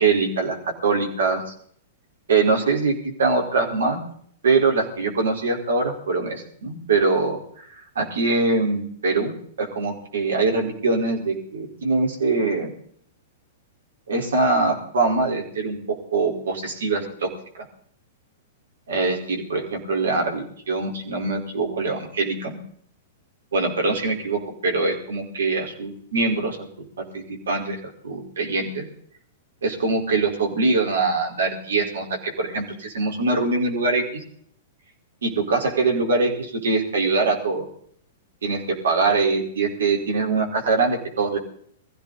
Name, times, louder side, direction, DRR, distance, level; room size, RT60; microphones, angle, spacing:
voice 1, 0.0-1.5 2.3-4.0 4.4-7.6 7.9-9.3 9.6-12.7 14.1-17.3 17.5-17.6 18.9-22.6 23.5-26.7 27.0-27.8 28.0-28.9 29.6-34.2 35.2-37.7 38.4-41.4, right 3 dB, 75° right, 2 dB, 4.6 m, -23 dB
21.0 x 15.5 x 4.2 m, 0.62 s
figure-of-eight pair, 105°, 0 cm